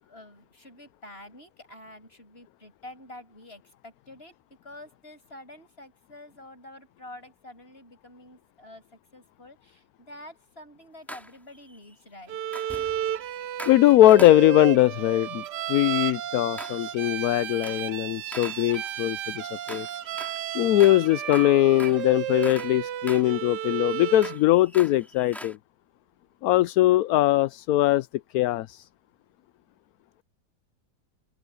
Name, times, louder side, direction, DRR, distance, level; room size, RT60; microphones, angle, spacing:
voice 1, 0.0-4.4 4.6-12.4, left 1 dB, 35° left, 7.4 m, -47 dB
sound 1, 11.1-11.9 12.5-14.8 15.6-16.0 16.6-17.0 17.3-17.9 18.3-22.8 23.1-25.5, equal, ahead, 2.8 m, -44 dB
Bowed string instrument, 12.3-24.4, right 11 dB, 80° right, 1.4 m, -33 dB
voice 2, 13.6-19.9 20.5-25.6 26.4-28.1 28.3-28.8, left 15 dB, 70° left, 0.9 m, -21 dB
open air
omnidirectional pair, 1.8 m